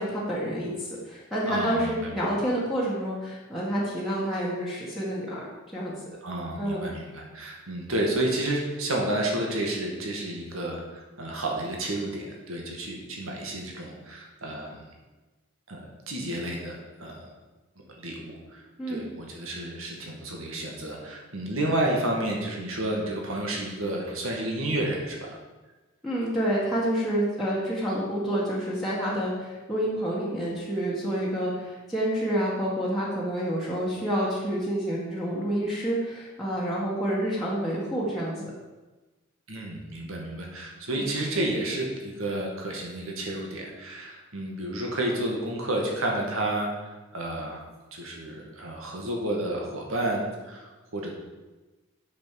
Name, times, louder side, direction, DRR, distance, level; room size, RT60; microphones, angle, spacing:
voice 1, 0.0-5.4 5.7-5.9 6.6-6.9 18.8-19.1 26.0-38.5 40.9-41.0, equal, ahead, -7 dB, 1.8 m, -28 dB
voice 2, 1.5-2.2 6.2-14.8 15.7-15.8 16.1-17.2 17.8-18.6 18.9-25.4 39.5-47.6 47.9-51.1, right 1 dB, 70° right, 0 dB, 2.2 m, -31 dB
8.1 x 6.6 x 6.7 m, 1.2 s
head